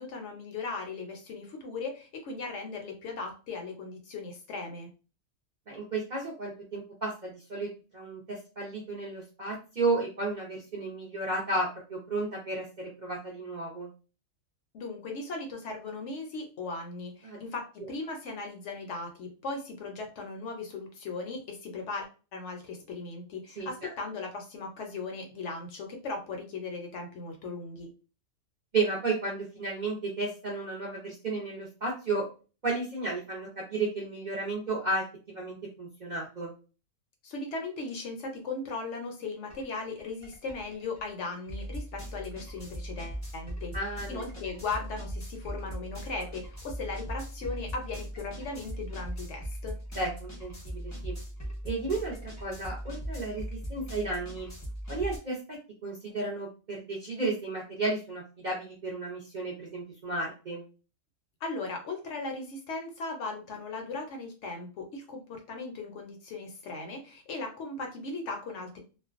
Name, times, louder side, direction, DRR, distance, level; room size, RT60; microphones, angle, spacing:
voice 1, 0.0-4.9 14.7-27.9 37.2-43.7 44.1-49.8 61.4-68.8, left 3 dB, 65° left, 3 dB, 0.8 m, -38 dB
voice 2, 5.7-13.9 17.2-17.4 23.6-23.9 28.7-32.3 32.6-36.5 43.7-44.2 50.0-51.1 51.6-52.2 52.4-54.5 54.9-60.6, right 3 dB, 50° right, -3 dB, 0.5 m, -33 dB
sound 1, 39.5-39.6 40.0-55.2, equal, 20° left, 0.5 m, -39 dB
2.4 x 2.1 x 2.4 m, 0.34 s
omnidirectional pair, 1.4 m